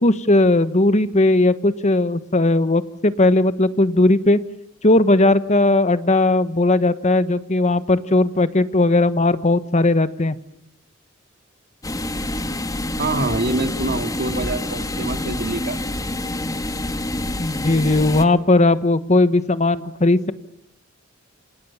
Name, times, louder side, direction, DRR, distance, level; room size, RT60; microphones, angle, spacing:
voice 1, 0.0-4.4 4.8-10.4 17.4-20.2, left 2 dB, 35° left, 13 dB, 1.3 m, -17 dB
sound 1, 11.8-18.2, left 1 dB, 15° left, 1.8 m, -27 dB
voice 2, 13.0-15.8, right 2 dB, 50° right, 8 dB, 2.4 m, -25 dB
28.0 x 27.5 x 7.3 m, 0.73 s
head